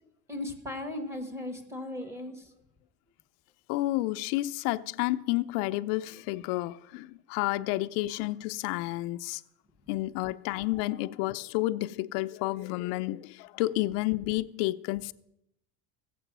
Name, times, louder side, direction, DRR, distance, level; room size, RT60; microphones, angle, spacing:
voice 1, 0.3-2.5, left 1 dB, 5° right, 1.4 m, -37 dB
voice 2, 3.7-9.4 9.9-15.1, left 18 dB, 90° left, 0.5 m, -30 dB
16.0 x 7.5 x 6.1 m
cardioid pair, 145°, 37 cm